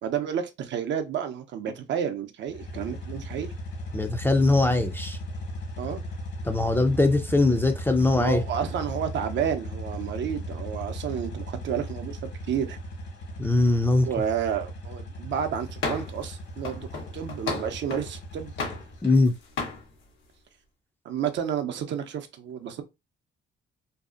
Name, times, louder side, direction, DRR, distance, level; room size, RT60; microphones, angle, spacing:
voice 1, 0.0-3.5 5.8-6.0 8.2-12.8 14.1-16.9 17.1-18.7 21.0-22.8, right 8 dB, 65° right, 0.5 m, -31 dB
sound 1, 2.5-19.2, equal, 60° left, 1.2 m, -37 dB
voice 2, 3.9-5.2 6.4-8.4 13.4-14.1 19.0-19.3, left 2 dB, 10° left, 0.4 m, -21 dB
sound 2, 15.8-16.2 16.6-18.1 18.6-19.3 19.6-19.8, left 4 dB, 80° left, 0.9 m, -33 dB
2.6 x 2.4 x 2.4 m
cardioid pair, 90°, 20 cm